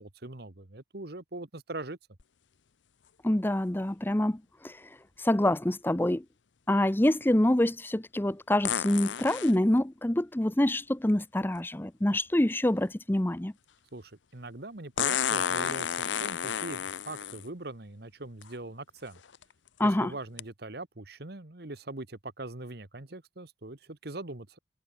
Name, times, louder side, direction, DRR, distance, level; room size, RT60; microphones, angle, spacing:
voice 1, 0.0-2.0 13.9-19.2 19.8-24.6, right 2 dB, 60° right, 1.6 m, -41 dB
sound 1, 2.2-2.3 8.6-9.5 11.6-11.7 15.0-17.5 18.4-18.5 19.2-19.4 20.4-20.5, left 8 dB, 85° left, 0.8 m, -31 dB
voice 2, 3.2-4.8 5.2-6.2 6.7-13.5 19.8-20.1, left 1 dB, 10° left, 0.6 m, -26 dB
head